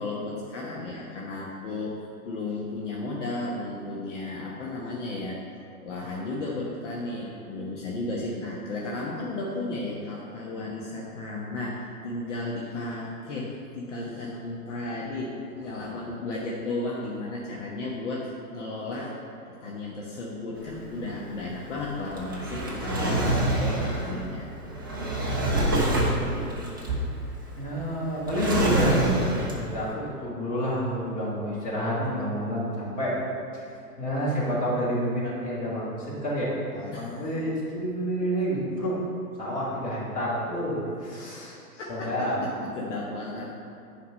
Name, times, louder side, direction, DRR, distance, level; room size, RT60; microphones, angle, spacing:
voice 1, 0.0-5.4 5.8-19.1 19.6-24.7 25.1-25.2 36.9-37.2 41.8-43.5, left 2 dB, 50° left, -3 dB, 1.2 m, -34 dB
voice 2, 15.7-16.1 25.8-26.5 27.6-29.1 29.5-33.1 33.5-33.6 34.0-39.0 39.4-41.6 41.9-42.4, equal, 15° left, -7 dB, 2.3 m, -29 dB
Drawer open or close, 20.6-29.9, right 1 dB, 15° right, 0.4 m, -27 dB
9.5 x 4.9 x 5.4 m, 2.4 s
figure-of-eight pair, 115°, 47 cm